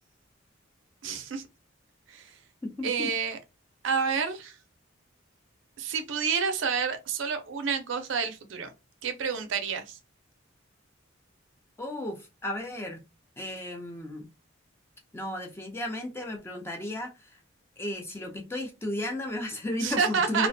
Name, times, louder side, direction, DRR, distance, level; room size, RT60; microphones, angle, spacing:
voice 1, 1.0-1.4 2.1-2.3 2.8-3.4 3.8-4.5 5.8-8.7 9.0-10.0 19.8-20.5, right 6 dB, 70° right, 0.4 m, -29 dB
voice 2, 2.6-3.1 11.8-13.0 13.4-14.3 15.1-17.4 17.8-20.5, left 1 dB, 10° left, 0.4 m, -34 dB
2.4 x 2.1 x 2.6 m
head